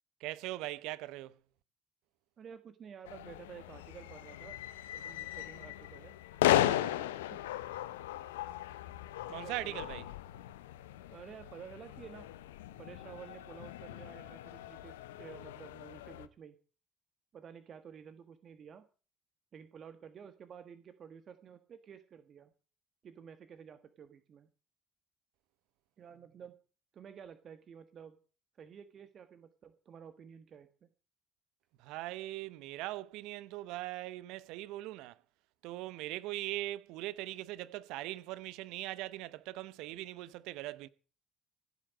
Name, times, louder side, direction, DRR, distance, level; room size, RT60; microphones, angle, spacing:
voice 1, 0.2-1.4 9.3-10.0 31.8-35.2 35.6-40.9, right 17 dB, 70° right, 0.8 m, -40 dB
voice 2, 2.4-4.6 4.9-6.1 6.7-7.4 9.3-9.9 11.1-12.3 12.8-16.6 17.3-18.8 19.5-22.5 23.0-24.5 26.0-26.6 26.9-28.2 28.6-30.9, right 7 dB, 50° right, 1.4 m, -51 dB
sound 1, 3.0-16.3, left 13 dB, 80° left, 0.8 m, -37 dB
16.0 x 8.1 x 7.6 m
hypercardioid pair, 50°, 0 cm